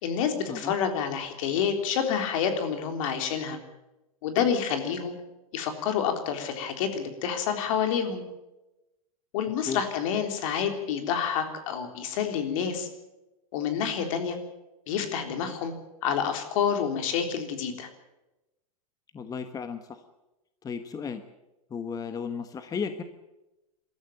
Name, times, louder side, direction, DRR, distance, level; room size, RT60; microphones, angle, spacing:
voice 1, 0.0-3.6 4.2-5.1 5.5-8.2 9.3-12.9 13.5-14.4 14.9-15.7 16.0-17.9, left 7 dB, 65° left, 6 dB, 3.6 m, -28 dB
voice 2, 19.1-20.0 20.6-21.2 21.7-23.0, left 6 dB, 20° left, 9 dB, 1.2 m, -34 dB
22.0 x 13.5 x 9.1 m, 0.99 s
hypercardioid pair, 125°, 19 cm